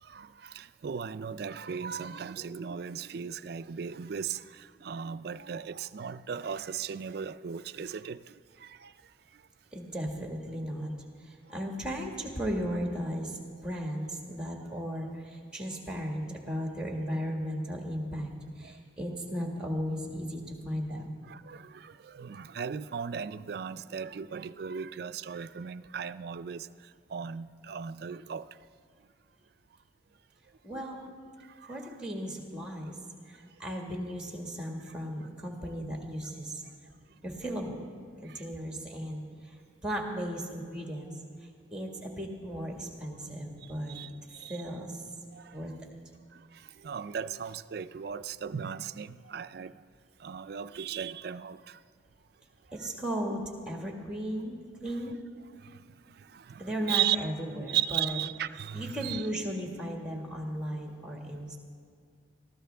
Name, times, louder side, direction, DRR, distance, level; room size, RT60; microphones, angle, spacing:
voice 1, 0.0-9.5 14.7-14.8 18.6-18.8 20.9-28.6 30.7-30.8 31.4-31.8 36.7-36.8 37.1-37.2 38.2-38.4 43.9-44.6 45.3-45.7 46.3-49.8 50.2-51.8 55.6-57.2 57.7-59.3, right 8 dB, 55° right, 0.4 m, -37 dB
voice 2, 9.7-10.9 11.2-21.1 30.6-31.1 31.6-33.0 33.3-36.6 37.2-37.8 38.2-41.1 41.4-44.0 44.5-45.1 45.5-45.7 52.7-55.2 56.6-58.2 58.7-61.6, equal, 5° right, 1.7 m, -36 dB
22.0 x 14.5 x 3.4 m
head